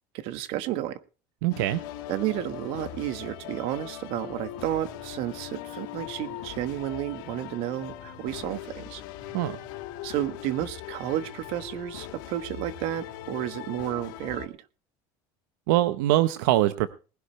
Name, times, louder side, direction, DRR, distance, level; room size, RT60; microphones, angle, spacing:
voice 1, 0.1-1.0 2.1-9.0 10.0-14.6, right 13 dB, 65° right, 13 dB, 1.3 m, -32 dB
voice 2, 1.4-1.8 9.3-9.6 15.7-16.9, right 15 dB, 90° right, 13 dB, 0.8 m, -23 dB
sound 1, 1.5-14.5, left 12 dB, 90° left, 2.6 m, -40 dB
20.0 x 11.5 x 3.2 m, 0.34 s
cardioid pair, 140°, 10 cm